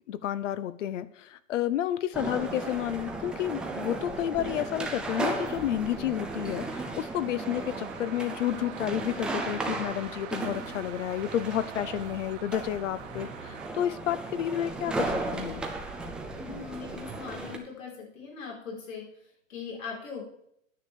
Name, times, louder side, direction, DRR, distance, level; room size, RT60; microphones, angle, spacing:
voice 1, 0.1-15.6, left 11 dB, 70° left, 16 dB, 0.9 m, -31 dB
sound 1, 2.1-17.6, right 2 dB, 5° right, 0.3 m, -36 dB
sound 2, 5.5-13.7, right 9 dB, 65° right, 1.6 m, -45 dB
voice 2, 16.3-20.3, left 5 dB, 85° left, -1 dB, 5.2 m, -40 dB
9.7 x 6.7 x 7.2 m, 0.72 s
hypercardioid pair, 140°, 39 cm